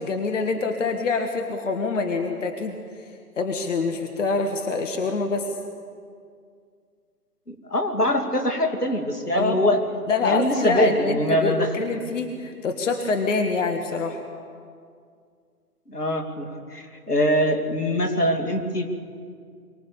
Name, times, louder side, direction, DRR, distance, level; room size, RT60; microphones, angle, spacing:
voice 1, 0.0-2.8 3.4-5.6 9.3-9.6 10.1-14.2, left 4 dB, 50° left, 5 dB, 1.6 m, -25 dB
voice 2, 7.5-9.8 10.2-11.7 15.9-18.9, left 1 dB, 80° left, 5 dB, 2.6 m, -23 dB
24.0 x 18.0 x 6.9 m, 2.2 s
figure-of-eight pair, 135°, 46 cm